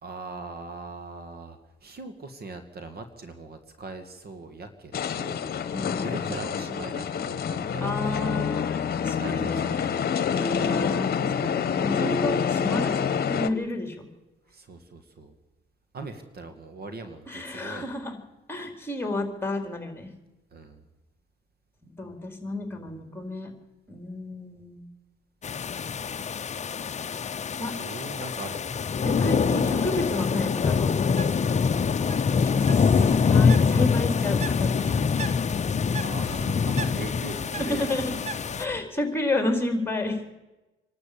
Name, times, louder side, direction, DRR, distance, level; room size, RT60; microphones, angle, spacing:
voice 1, 0.0-5.6 6.0-8.3 9.2-9.9 10.5-10.8 14.5-15.3 15.9-17.9 20.5-20.8 27.7-28.7 29.6-30.5 32.4-33.5 36.0-38.1, right 3 dB, 50° right, 8 dB, 2.3 m, -40 dB
sound 1, 4.9-13.5, left 7 dB, 50° left, 1.2 m, -27 dB
voice 2, 5.7-6.3 7.8-10.1 10.4-14.1 17.3-18.2 18.5-20.1 22.0-23.5 23.9-24.8 27.6-27.7 29.0-30.9 32.5-32.6 33.2-34.8 37.6-38.1 38.6-40.3, left 2 dB, 10° left, 5 dB, 4.1 m, -31 dB
sound 2, 25.4-38.6, left 5 dB, 35° left, 0.7 m, -25 dB
Bird, 31.0-38.8, right 4 dB, 35° right, 1.4 m, -41 dB
25.5 x 12.5 x 8.7 m, 1.0 s
cardioid pair, 90°, 20 cm